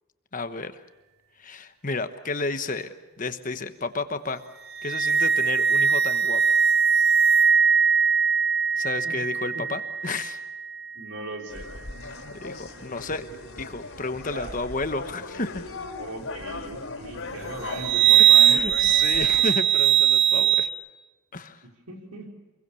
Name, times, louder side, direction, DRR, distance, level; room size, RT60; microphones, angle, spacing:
voice 1, 0.3-0.7 1.4-4.4 4.8-6.4 8.8-10.4 12.4-13.2 13.6-15.6 18.2-20.7 21.3-21.6, left 3 dB, 35° left, 9 dB, 1.2 m, -32 dB
sound 1, 4.7-11.0 17.7-20.7, right 8 dB, 45° right, 1.0 m, -20 dB
voice 2, 10.9-11.7 14.2-14.6 16.0-18.7 21.9-22.3, right 1 dB, 80° right, 2 dB, 4.1 m, -38 dB
sound 2, 11.5-19.5, left 3 dB, 65° left, 3.2 m, -38 dB
27.5 x 22.0 x 7.1 m, 1.1 s
head